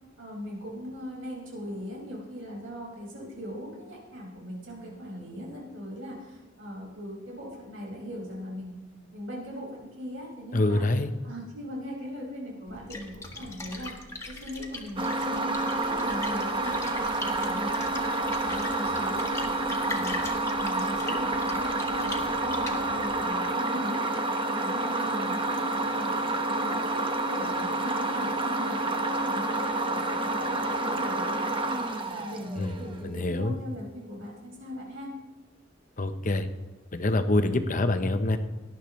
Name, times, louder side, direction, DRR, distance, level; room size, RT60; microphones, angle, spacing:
voice 1, 0.2-8.8 9.1-10.8 11.2-17.0 17.4-20.2 20.5-31.6 32.1-35.1, equal, 90° right, -3 dB, 5.4 m, -39 dB
voice 2, 10.5-11.1 32.6-32.7 33.0-33.6 36.0-36.5 36.9-38.4, left 2 dB, 40° left, 8 dB, 0.8 m, -25 dB
Splash splatter, 12.7-23.3, left 2 dB, 15° left, 1.4 m, -41 dB
sound 1, 15.0-32.9, right 2 dB, 25° right, 0.9 m, -29 dB
19.0 x 12.0 x 3.2 m, 1.1 s
head